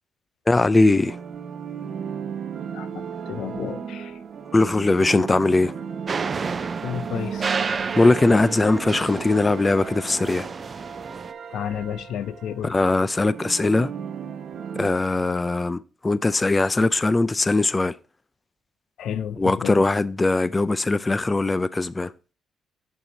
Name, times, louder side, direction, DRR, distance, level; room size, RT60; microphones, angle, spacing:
voice 1, 0.5-1.2 4.5-5.7 8.0-10.5 12.6-13.9 14.8-18.0 19.4-22.1, left 2 dB, 20° left, 0.4 m, -20 dB
sound 1, 0.9-14.9, right 7 dB, 55° right, 0.9 m, -35 dB
voice 2, 2.7-4.2 6.8-7.8 11.5-12.7 19.0-19.9, left 9 dB, 75° left, 0.5 m, -32 dB
sound 2, 6.1-11.3, right 5 dB, 35° right, 0.5 m, -31 dB
6.9 x 6.5 x 2.7 m
cardioid pair, 90°, 0 cm